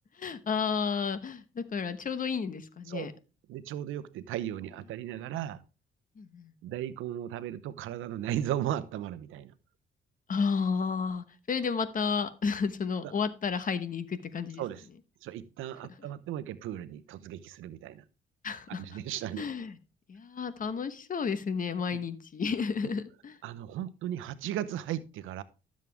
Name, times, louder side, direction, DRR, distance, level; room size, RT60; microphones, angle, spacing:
voice 1, 0.2-3.1 6.2-6.5 10.3-14.6 18.4-18.8 19.4-19.7 20.1-23.4, left 5 dB, 45° left, 1.1 m, -32 dB
voice 2, 3.5-5.6 6.6-9.5 13.0-13.1 14.6-14.9 15.2-18.0 18.7-19.5 23.4-25.4, right 11 dB, 85° right, 0.8 m, -36 dB
12.5 x 7.4 x 3.4 m
cardioid pair, 90°, 20 cm